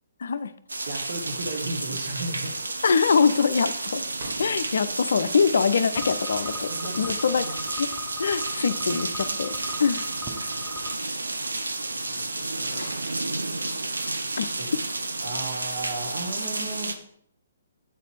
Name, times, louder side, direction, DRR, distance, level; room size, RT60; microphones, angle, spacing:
voice 1, 0.2-0.5 2.8-4.1 4.4-6.7 7.0-7.5 7.8-7.9 8.2-10.0 12.7-12.9 14.4-14.5, left 5 dB, 60° left, 13 dB, 0.4 m, -23 dB
sound 1, 0.7-16.9, right 2 dB, 75° right, 0.7 m, -31 dB
voice 2, 0.8-2.5 6.7-7.1 10.3-10.4 12.1-13.0 14.6-14.7 15.2-16.9, right 2 dB, 55° right, 2 dB, 1.4 m, -35 dB
sound 2, 4.2-4.9 6.0-6.1 6.4-7.9 8.7-9.1, right 2 dB, 35° right, 2.3 m, -50 dB
sound 3, 6.0-10.9, left 3 dB, 10° right, 0.7 m, -41 dB
8.0 x 4.1 x 4.5 m, 0.67 s
figure-of-eight pair, 130°, 0 cm